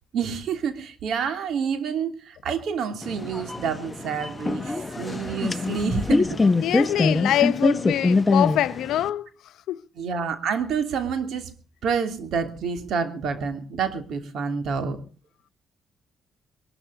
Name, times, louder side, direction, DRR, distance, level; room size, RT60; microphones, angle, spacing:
voice 1, 0.1-6.4 10.0-11.5 11.8-15.0, right 6 dB, 70° right, 2.8 m, -28 dB
sound 1, 3.0-9.1, left 3 dB, 20° left, 1.1 m, -24 dB
voice 2, 6.6-9.3 9.7-9.8, left 12 dB, 80° left, 0.8 m, -24 dB
22.0 x 12.5 x 3.9 m
cardioid pair, 90°, 0 cm